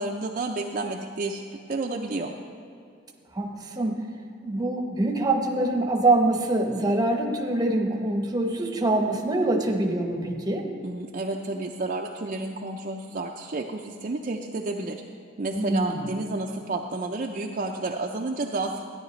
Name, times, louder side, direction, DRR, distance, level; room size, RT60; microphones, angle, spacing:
voice 1, 0.0-1.4 1.7-2.3 10.8-15.0 15.4-18.9, right 2 dB, 40° right, 1 dB, 0.5 m, -31 dB
voice 2, 3.3-4.0 4.4-10.7 15.5-16.1, right 2 dB, 20° right, 3 dB, 0.8 m, -24 dB
14.0 x 9.9 x 3.1 m, 2.5 s
head